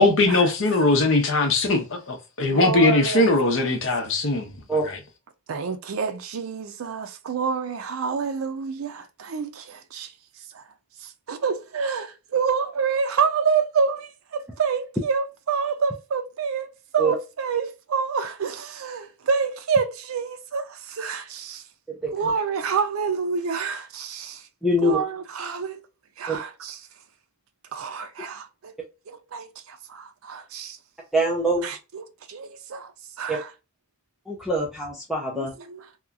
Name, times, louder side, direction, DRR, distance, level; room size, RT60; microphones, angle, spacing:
voice 1, 0.0-4.5 4.8-5.0, left 2 dB, 65° left, 0.7 m, -20 dB
voice 2, 2.5-3.3 5.5-10.1 10.5-10.6 11.0-21.6 22.1-24.5 24.8-25.8 26.2-26.8 27.7-28.7 29.1-30.8 31.6-32.9 33.2-33.5 35.3-35.9, right 5 dB, 75° right, 0.4 m, -28 dB
voice 3, 24.6-25.0 26.3-26.4 31.1-31.7 33.3-33.4 34.3-35.5, right 1 dB, ahead, 0.5 m, -23 dB
2.9 x 2.3 x 2.3 m
head